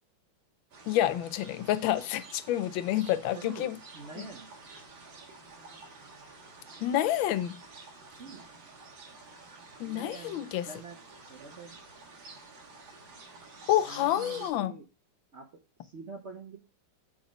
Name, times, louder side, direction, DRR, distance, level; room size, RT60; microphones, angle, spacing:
sound 1, 0.7-14.5, right 3 dB, 80° right, 2.2 m, -50 dB
voice 1, 0.9-3.8 4.2-4.3 6.8-7.6 9.8-10.7 13.7-14.7, left 13 dB, 90° left, 1.4 m, -28 dB
voice 2, 3.3-4.5 8.2-8.4 9.8-11.0 11.3-11.7 13.9-14.9 15.3-15.5 15.8-16.6, right 4 dB, 60° right, 0.7 m, -45 dB
6.0 x 4.0 x 5.1 m
omnidirectional pair, 2.1 m